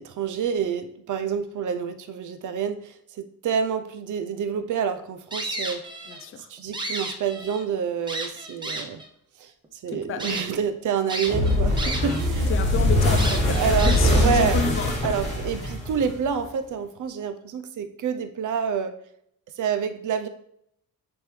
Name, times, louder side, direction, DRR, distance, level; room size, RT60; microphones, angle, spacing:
voice 1, 0.0-5.8 6.5-9.0 9.4-9.5 9.8-12.5 13.5-14.6 15.0-19.0 19.6-20.3, right 7 dB, 60° right, 9 dB, 0.6 m, -28 dB
sound 1, 5.3-6.2 6.6-7.6 8.1-9.1 9.6-9.7 10.2-10.4 11.1-12.3 12.6-12.7 13.2-14.3, right 1 dB, 15° right, 0.6 m, -32 dB
voice 2, 6.1-6.5 9.9-10.4 12.5-15.2, left 5 dB, 40° left, 7 dB, 0.5 m, -30 dB
sound 2, 11.3-16.4, left 1 dB, 20° left, 2.2 m, -22 dB
9.6 x 3.6 x 3.2 m, 0.72 s
wide cardioid pair, 165°, 34 cm